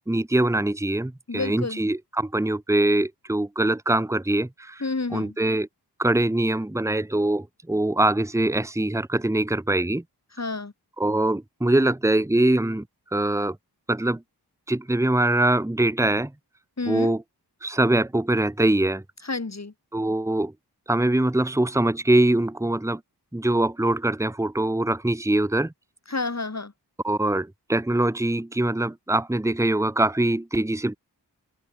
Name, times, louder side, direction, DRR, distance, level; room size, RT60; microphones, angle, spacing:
voice 1, 0.0-4.8 5.1-5.7 6.0-10.0 11.0-12.8 13.1-13.6 13.9-14.2 14.7-16.3 16.9-17.2 17.6-19.0 19.9-20.5 20.9-23.0 23.3-25.7 27.0-31.0, right 1 dB, 5° right, 1.3 m, -23 dB
voice 2, 1.3-1.8 4.8-5.4 10.3-10.7 16.8-17.1 19.2-19.7 26.1-26.7, left 3 dB, 40° left, 4.7 m, -30 dB
cardioid pair, 45°, 40 cm